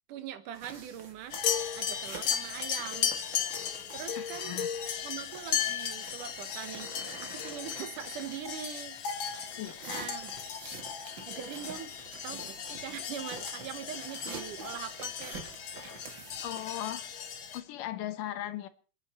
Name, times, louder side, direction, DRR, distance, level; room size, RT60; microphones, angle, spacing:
voice 1, 0.1-1.4 1.7-3.1 3.9-4.6 5.0-6.9 7.2-9.0 9.9-10.3 11.3-11.9 12.2-15.4, right 10 dB, 70° right, 11 dB, 2.5 m, -42 dB
sound 1, 0.5-8.7 9.2-16.6, right 5 dB, 40° right, 2.0 m, -49 dB
sound 2, 1.3-17.6, left 8 dB, 55° left, 1.4 m, -36 dB
voice 2, 4.2-4.7 9.6-10.1 16.4-18.7, left 13 dB, 75° left, 11 dB, 2.5 m, -38 dB
28.0 x 10.0 x 4.2 m, 0.37 s
omnidirectional pair, 3.9 m